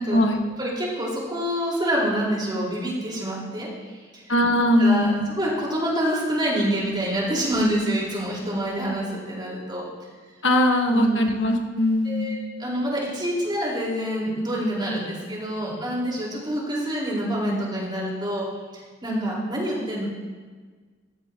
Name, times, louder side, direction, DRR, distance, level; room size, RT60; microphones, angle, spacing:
voice 1, 0.6-4.2 4.8-5.1 5.4-9.8 10.9-11.4 12.0-18.5 18.7-20.0, equal, 25° right, -4 dB, 4.6 m, -27 dB
voice 2, 4.3-5.3 10.4-12.3, left 1 dB, 75° left, 3 dB, 1.5 m, -20 dB
17.5 x 14.5 x 3.0 m, 1.4 s
head